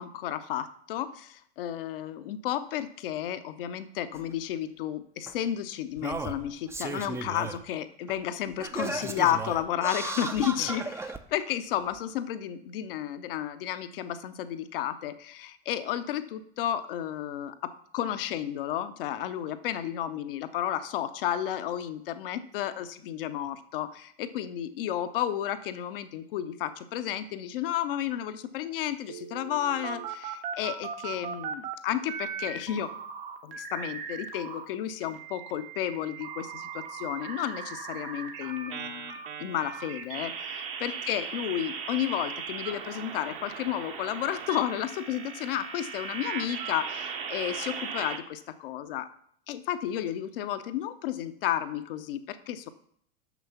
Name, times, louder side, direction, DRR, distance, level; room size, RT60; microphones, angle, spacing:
voice 1, 0.0-32.9 33.4-49.1 49.5-52.7, left 11 dB, 60° left, 12 dB, 0.7 m, -32 dB
Singing, 4.1-4.2 5.3-5.4 6.0-7.6 8.1-8.2 8.6-11.2 12.0-12.1, right 3 dB, 10° right, 0.5 m, -35 dB
sound 1, 29.1-31.7 32.1-34.6 35.0-48.2, right 6 dB, 55° right, 1.2 m, -38 dB
6.3 x 6.0 x 5.7 m, 0.65 s
figure-of-eight pair, 80°, 32 cm